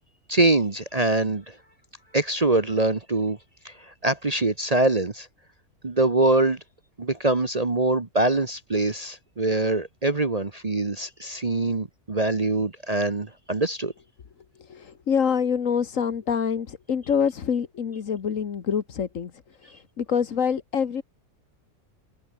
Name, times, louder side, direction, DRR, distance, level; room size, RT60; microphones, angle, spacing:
voice 1, 0.3-1.5 2.1-3.4 3.6-5.3 5.8-6.6 7.0-13.9, right 2 dB, 25° right, 1.2 m, -24 dB
voice 2, 14.6-21.0, left 7 dB, 60° left, 1.7 m, -26 dB
omnidirectional pair, 1.6 m